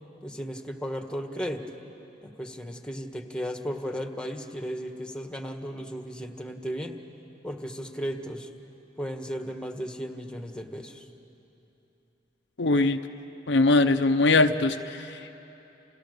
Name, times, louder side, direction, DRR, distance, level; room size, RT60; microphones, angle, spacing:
voice 1, 0.2-1.7 2.2-7.0 7.4-8.5 9.0-11.1, equal, 5° left, 5 dB, 1.6 m, -35 dB
voice 2, 12.6-13.0 13.5-15.3, left 2 dB, 70° left, 8 dB, 0.8 m, -22 dB
29.5 x 29.0 x 6.8 m, 3.0 s
head